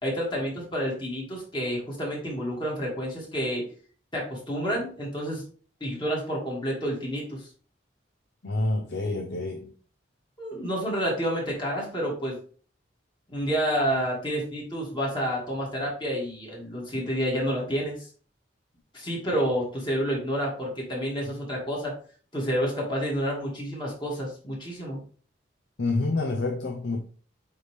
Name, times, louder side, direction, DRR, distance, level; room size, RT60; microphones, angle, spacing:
voice 1, 0.0-3.6 4.1-5.4 5.8-7.5 10.4-12.4 13.3-18.0 18.9-21.9 22.3-25.0, equal, 25° left, 2.3 m, -29 dB
voice 2, 8.4-9.7 21.3-21.4 25.8-27.0, left 2 dB, 65° left, 0.7 m, -28 dB
8.4 x 3.3 x 3.5 m
head